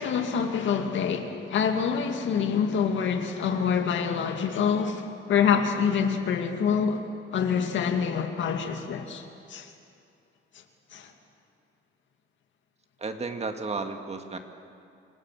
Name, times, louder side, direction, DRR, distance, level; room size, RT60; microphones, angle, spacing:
voice 1, 0.0-7.0 7.3-9.2 9.5-9.7 10.9-11.1, left 7 dB, 70° left, 2.2 m, -26 dB
voice 2, 13.0-14.4, right 3 dB, 30° right, 2.0 m, -33 dB
26.0 x 17.5 x 7.6 m
cardioid pair, 90°, 20 cm